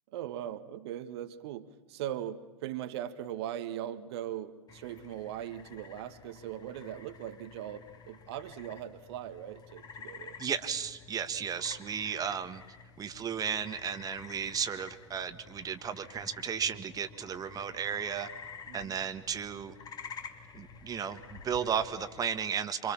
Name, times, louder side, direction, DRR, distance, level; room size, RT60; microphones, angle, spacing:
voice 1, 0.1-10.4 18.7-19.0, right 11 dB, 55° right, 1.6 m, -40 dB
sound 1, 4.7-22.3, left 6 dB, 25° left, 2.7 m, -50 dB
voice 2, 10.4-12.6 13.0-18.3 18.7-19.7 20.5-22.9, right 7 dB, 25° right, 1.7 m, -34 dB
27.5 x 26.5 x 7.2 m
figure-of-eight pair, 95°, 16 cm